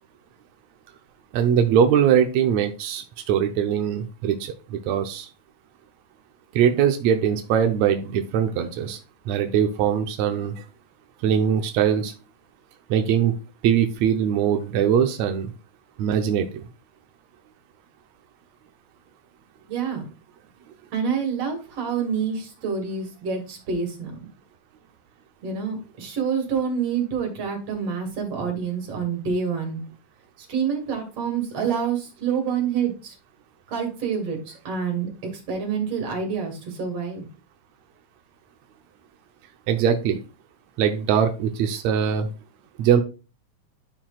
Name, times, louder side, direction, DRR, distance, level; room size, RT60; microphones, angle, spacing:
voice 1, 1.3-5.3 6.5-9.0 9.3-10.6 11.2-12.1 12.9-13.3 13.6-15.5 16.0-16.6 39.7-40.2 40.8-42.3 42.8-43.0, right 8 dB, 80° right, 5 dB, 1.6 m, -21 dB
voice 2, 19.6-20.1 20.9-24.1 25.4-29.8 30.5-33.1 33.7-34.4 34.6-35.1 35.5-37.3, right 6 dB, 50° right, 1 dB, 2.9 m, -27 dB
11.0 x 5.8 x 2.4 m, 0.33 s
omnidirectional pair, 4.0 m